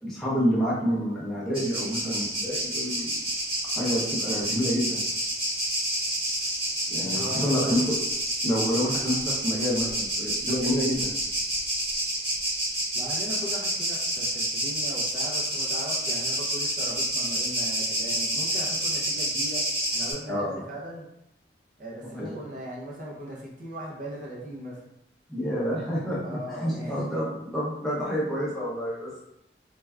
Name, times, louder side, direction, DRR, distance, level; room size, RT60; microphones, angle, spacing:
voice 1, 0.0-3.2 3.7-5.0 6.9-8.0 8.4-11.1 20.3-20.5 22.0-22.4 25.3-29.1, equal, ahead, -8 dB, 0.7 m, -28 dB
sound 1, 1.5-20.1, right 1 dB, 30° right, 0.9 m, -29 dB
voice 2, 6.9-7.7 12.9-19.6 19.9-21.1 21.8-24.8 26.2-27.1, equal, 45° right, -4 dB, 0.6 m, -38 dB
3.3 x 2.3 x 2.2 m, 0.80 s
head